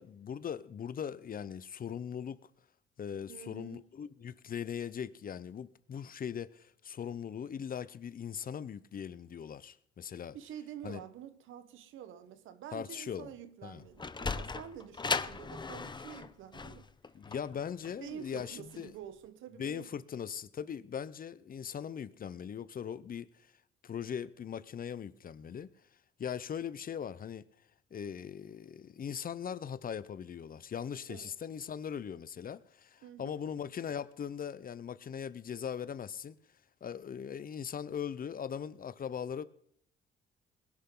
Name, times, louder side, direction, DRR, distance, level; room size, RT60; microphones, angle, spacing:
voice 1, 0.0-2.4 3.0-10.4 10.8-11.0 12.7-13.3 13.6-13.8 17.1-18.9 19.6-23.3 23.8-25.7 26.2-27.5 27.9-36.4 36.8-39.4, left 8 dB, 45° left, 0.9 m, -40 dB
voice 2, 3.3-3.9 10.3-16.9 18.0-19.9 31.1-31.3 33.0-33.4, right 9 dB, 80° right, 1.2 m, -48 dB
Sliding door, 13.7-18.9, left 4 dB, 20° left, 0.8 m, -38 dB
21.0 x 11.0 x 3.9 m
cardioid pair, 90°, 20 cm